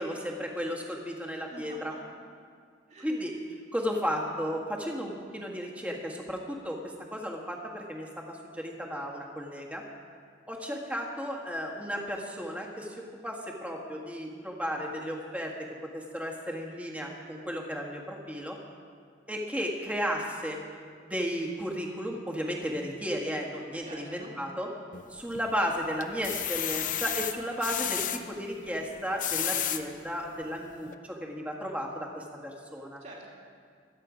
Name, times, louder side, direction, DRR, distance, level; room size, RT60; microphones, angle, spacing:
voice 1, 0.0-1.9 3.0-3.4 3.7-9.8 10.5-18.6 19.3-20.6 21.0-24.7 25.1-33.0, equal, 5° right, 0 dB, 1.6 m, -34 dB
voice 2, 1.5-2.2 2.9-3.1 23.8-24.3 33.0-33.3, right 2 dB, 35° right, -3 dB, 2.7 m, -47 dB
sound 1, 24.9-25.5 26.0-28.2 29.0-29.8 30.4-30.5 30.9-31.0, left 10 dB, 45° left, 0.7 m, -31 dB
24.5 x 8.9 x 5.1 m, 2.1 s
head